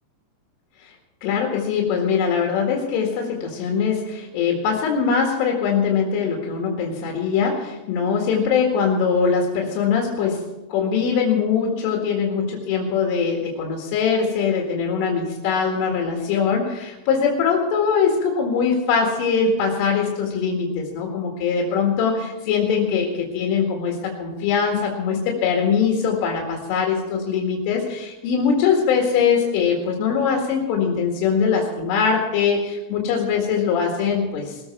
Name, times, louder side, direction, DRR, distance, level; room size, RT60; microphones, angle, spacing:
voice 1, 1.2-34.6, left 6 dB, 85° left, -1 dB, 4.5 m, -22 dB
20.5 x 14.5 x 4.5 m, 1.0 s
omnidirectional pair, 5.5 m